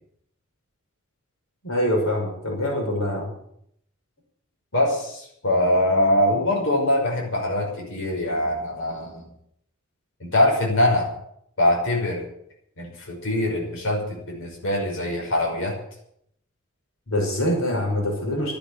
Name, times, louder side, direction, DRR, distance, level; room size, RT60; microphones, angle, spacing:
voice 1, 1.6-3.3 17.1-18.5, left 1 dB, 85° left, 0 dB, 5.8 m, -24 dB
voice 2, 4.7-9.2 10.2-11.1 11.6-12.2 12.8-15.7, left 1 dB, 65° left, -2 dB, 5.8 m, -23 dB
13.0 x 10.0 x 9.9 m, 0.72 s
head